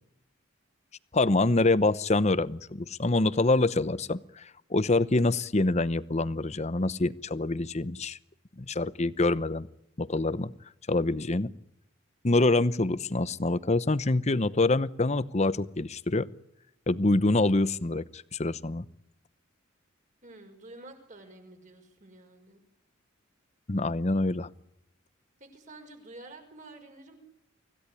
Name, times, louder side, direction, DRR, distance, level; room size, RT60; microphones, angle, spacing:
voice 1, 1.1-4.4 4.7-8.2 8.6-9.7 10.0-10.5 10.9-11.5 12.2-16.3 16.9-18.8 23.7-24.5, left 2 dB, 35° left, 16 dB, 0.8 m, -26 dB
voice 2, 20.2-22.6 25.4-27.1, right 2 dB, 40° right, 4 dB, 5.8 m, -49 dB
25.5 x 16.5 x 10.0 m, 0.84 s
head